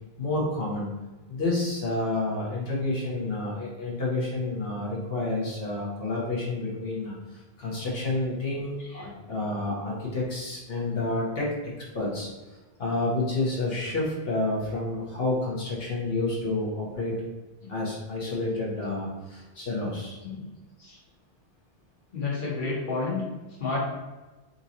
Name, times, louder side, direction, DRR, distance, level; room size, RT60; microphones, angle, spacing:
voice 1, 0.2-0.9 1.3-12.3 12.8-17.1 17.7-20.2, left 2 dB, 70° left, -4 dB, 1.2 m, -29 dB
voice 2, 22.1-23.2 23.6-23.8, left 3 dB, 55° left, -4 dB, 1.3 m, -31 dB
3.7 x 2.7 x 4.1 m, 1.2 s
omnidirectional pair, 1.1 m